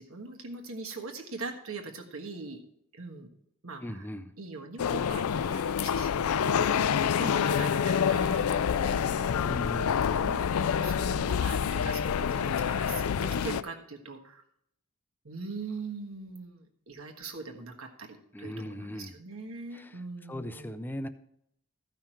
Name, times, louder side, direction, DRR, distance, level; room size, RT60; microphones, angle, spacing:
voice 1, 0.0-2.6 2.9-3.3 3.6-4.1 4.4-9.4 10.2-14.4 15.2-20.9, right 4 dB, 65° right, 3 dB, 1.4 m, -42 dB
voice 2, 3.8-4.3 6.4-6.8 9.4-10.0 18.3-19.1 19.7-19.9 20.3-21.1, left 1 dB, 10° left, 11 dB, 0.5 m, -38 dB
sound 1, 4.8-13.6, left 7 dB, 70° left, 0.4 m, -27 dB
14.5 x 5.8 x 4.4 m, 0.74 s
head